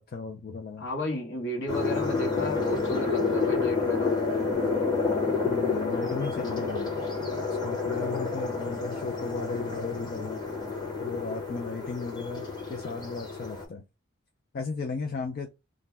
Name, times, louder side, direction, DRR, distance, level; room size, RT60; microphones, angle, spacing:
voice 1, 0.1-0.9 5.4-6.9 7.6-10.4 11.0-13.8 14.5-15.5, left 4 dB, 45° left, 0.4 m, -35 dB
voice 2, 0.8-4.2, left 1 dB, 65° left, 1.2 m, -33 dB
sound 1, 1.7-13.6, left 4 dB, 20° left, 0.9 m, -29 dB
2.5 x 2.1 x 3.2 m
head